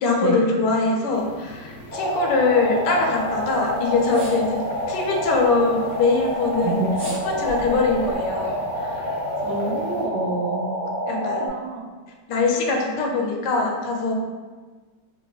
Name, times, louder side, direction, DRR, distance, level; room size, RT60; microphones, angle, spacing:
voice 1, 0.0-6.8 7.2-9.0 9.4-9.6 11.1-11.5 12.3-14.1, left 3 dB, 80° left, 1 dB, 1.2 m, -22 dB
sound 1, 1.1-10.1, left 1 dB, 60° left, 0.8 m, -42 dB
sound 2, 1.9-11.5, equal, 10° left, 0.5 m, -28 dB
sound 3, 3.1-8.2, left 1 dB, 25° right, 1.2 m, -41 dB
voice 2, 9.5-10.7 11.1-11.8, right 3 dB, 80° right, 2 dB, 1.2 m, -27 dB
4.4 x 2.8 x 2.9 m, 1.4 s
omnidirectional pair, 1.9 m